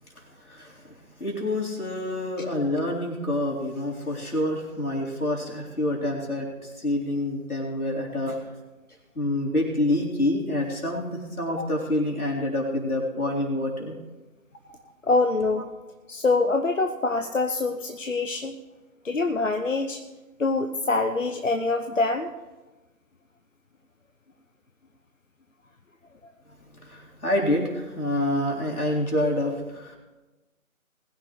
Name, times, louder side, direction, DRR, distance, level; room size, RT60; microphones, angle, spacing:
voice 1, 0.5-8.4 9.2-13.9 26.8-30.0, left 1 dB, 80° left, -2 dB, 3.9 m, -27 dB
voice 2, 15.0-15.7 16.1-18.5 19.0-20.0 20.4-22.3, left 3 dB, 60° left, 5 dB, 0.9 m, -25 dB
20.5 x 10.5 x 3.2 m, 1.1 s
figure-of-eight pair, 160°, 44 cm